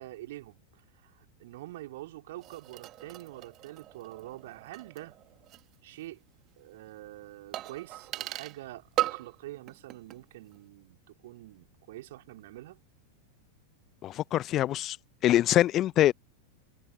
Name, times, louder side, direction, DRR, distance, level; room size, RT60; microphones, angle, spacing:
voice 1, 0.0-5.2 5.8-6.2 6.6-12.8, right 16 dB, 55° right, 4.6 m, -45 dB
sound 1, 2.4-5.7 6.0-6.1 7.5-8.6 9.0-9.4 9.7-10.2 10.5-10.6, right 15 dB, 35° right, 3.0 m, -37 dB
voice 2, 14.0-15.0 15.2-16.1, left 13 dB, 30° left, 0.8 m, -24 dB
figure-of-eight pair, 90°, 0 cm